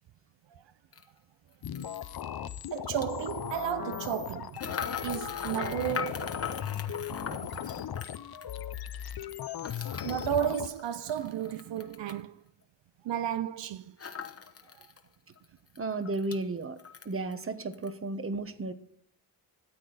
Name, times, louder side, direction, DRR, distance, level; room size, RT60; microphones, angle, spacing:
sound 1, 0.9-1.0 1.7-1.9 2.8-3.1 4.5-8.5 9.6-12.2 14.0-15.0 15.4-15.5 15.7-16.4 16.8-17.4 17.7-17.9, left 6 dB, 35° left, 1.0 m, -40 dB
sound 2, 1.6-10.7, left 10 dB, 55° left, 0.7 m, -37 dB
voice 1, 2.7-7.6 9.8-12.5 13.0-14.0 14.6-14.9, right 11 dB, 75° right, 0.6 m, -34 dB
voice 2, 15.8-16.8 17.0-18.7, right 2 dB, 30° right, 1.1 m, -33 dB
13.5 x 8.4 x 4.0 m
cardioid pair, 80°, 44 cm